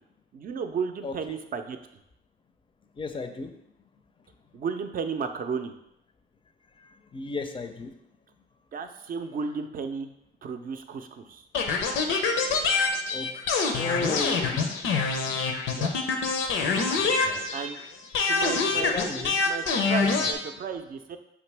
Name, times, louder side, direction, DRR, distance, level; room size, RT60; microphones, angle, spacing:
voice 1, 0.3-1.8 4.5-5.7 8.7-10.1 10.4-11.5 15.7-16.0 17.5-17.8 18.3-21.2, right 5 dB, 45° right, 7 dB, 0.5 m, -34 dB
voice 2, 1.0-1.4 3.0-3.5 7.1-7.9 13.1-13.4 13.8-14.8 17.2-17.5 18.7-19.4 19.8-20.3, left 4 dB, 25° left, 8 dB, 0.4 m, -34 dB
sound 1, 11.5-17.8 18.1-20.3, left 4 dB, 80° left, 0.6 m, -25 dB
5.0 x 2.9 x 3.3 m, 0.80 s
cardioid pair, 90°, 20 cm